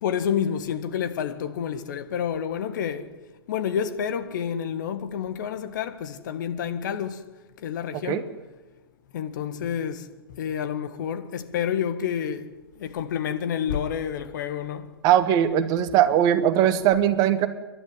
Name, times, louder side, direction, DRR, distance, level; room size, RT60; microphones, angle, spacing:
voice 1, 0.0-3.1 3.5-7.2 7.6-8.3 9.1-12.5 12.8-14.9, left 8 dB, 50° left, 1.7 m, -29 dB
voice 2, 15.0-17.5, right 10 dB, 30° right, 1.3 m, -20 dB
29.5 x 12.0 x 9.9 m
figure-of-eight pair, 115°, 13 cm